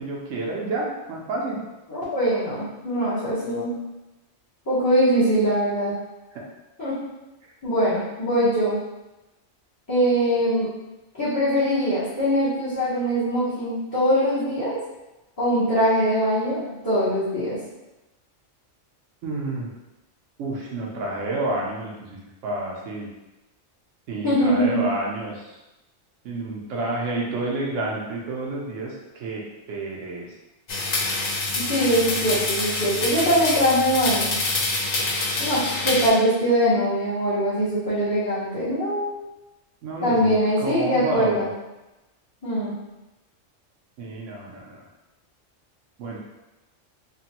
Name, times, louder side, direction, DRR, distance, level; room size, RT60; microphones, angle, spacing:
voice 1, 0.0-1.6 6.3-6.4 19.2-19.7 20.4-23.1 24.1-25.6 26.2-29.4 29.7-30.3 39.8-41.5 44.0-44.8 46.0-46.2, right 2 dB, 85° right, -3 dB, 1.0 m, -30 dB
voice 2, 1.9-3.8 4.7-5.9 6.8-6.9 7.6-8.8 9.9-10.7 11.1-14.8 15.4-17.6 24.2-24.8 31.5-34.3 35.4-39.2 40.0-41.5 42.4-42.7, equal, 20° left, -13 dB, 0.7 m, -22 dB
sound 1, 30.7-36.1, left 2 dB, 55° left, 0.5 m, -26 dB
3.2 x 2.2 x 2.8 m, 1.0 s
omnidirectional pair, 1.2 m